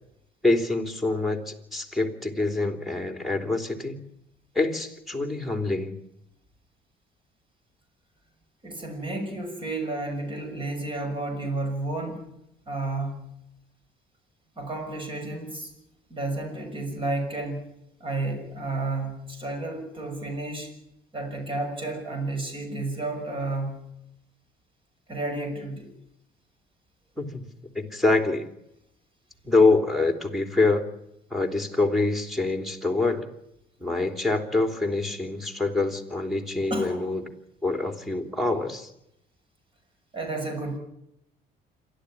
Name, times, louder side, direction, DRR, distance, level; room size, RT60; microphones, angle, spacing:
voice 1, 0.4-4.0 4.5-5.9 27.2-27.5 27.7-28.5 29.4-30.8 31.3-33.3 33.8-37.2 37.6-38.9, left 3 dB, ahead, 6 dB, 3.3 m, -25 dB
voice 2, 8.6-12.3 12.7-13.3 14.6-15.7 16.1-17.7 18.0-20.7 21.1-23.9 25.1-25.9 36.7-37.0 40.1-40.8, right 2 dB, 30° right, 5 dB, 6.1 m, -31 dB
27.5 x 12.0 x 10.0 m, 0.81 s
cardioid pair, 110°, 17 cm